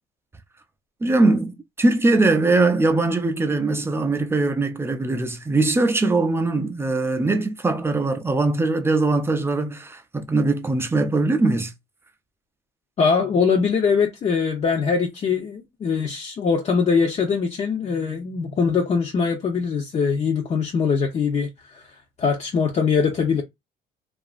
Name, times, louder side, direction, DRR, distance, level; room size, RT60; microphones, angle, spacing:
voice 1, 1.0-11.7, right 2 dB, 15° right, 0.5 m, -21 dB
voice 2, 13.0-21.8 22.2-23.4, left 5 dB, 40° left, 0.6 m, -22 dB
2.8 x 2.4 x 2.4 m
cardioid pair, 110°, 17 cm